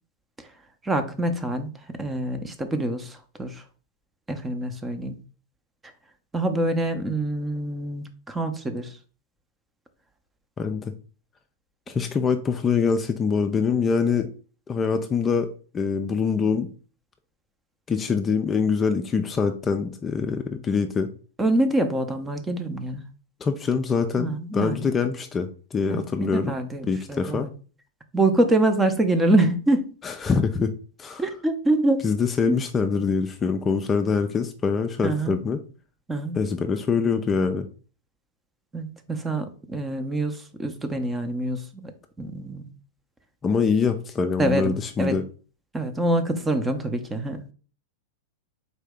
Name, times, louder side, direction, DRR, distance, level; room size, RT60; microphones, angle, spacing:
voice 1, 0.8-3.6 4.3-5.2 6.3-8.9 21.4-23.0 24.1-24.9 25.9-27.5 28.1-29.9 31.2-32.0 35.0-35.4 36.1-36.4 38.7-41.9 42.2-42.6 44.4-45.2 45.7-47.5, right 1 dB, 15° right, 0.6 m, -25 dB
voice 2, 10.6-10.9 11.9-14.3 14.7-16.7 17.9-21.1 23.4-26.6 26.9-27.5 30.0-30.7 31.0-31.2 32.0-35.6 36.3-37.7 43.4-45.2, left 5 dB, 25° left, 0.4 m, -24 dB
4.0 x 2.7 x 3.5 m
hypercardioid pair, 105°, 0 cm